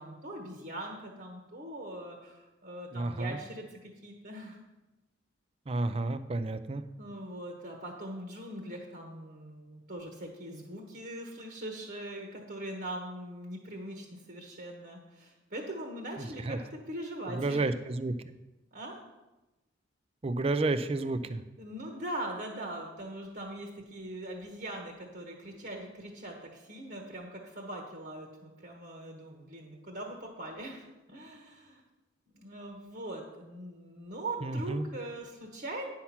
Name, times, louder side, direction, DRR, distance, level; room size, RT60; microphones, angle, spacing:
voice 1, 0.0-4.6 7.0-16.6 16.9-17.6 18.7-19.0 21.6-31.8 32.3-35.9, right 1 dB, 50° right, 1 dB, 1.2 m, -41 dB
voice 2, 2.9-3.4 5.7-6.8 16.2-16.6 17.3-18.1 20.2-21.4 34.4-34.9, right 2 dB, 30° right, 12 dB, 0.4 m, -31 dB
9.8 x 5.8 x 5.9 m, 1.0 s
head